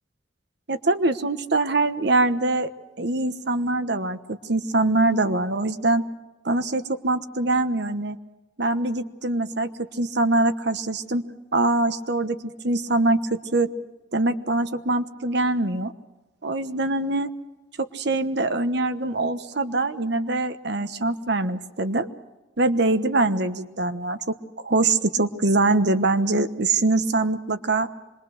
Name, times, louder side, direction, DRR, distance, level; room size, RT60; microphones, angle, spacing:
voice 1, 0.7-2.7 3.0-6.0 6.4-8.2 8.6-11.2 11.5-13.7 14.1-15.9 16.4-17.3 17.8-22.1 22.6-24.3 24.6-27.9, right 2 dB, 60° right, 10 dB, 1.2 m, -23 dB
25.5 x 22.0 x 6.5 m, 1.1 s
head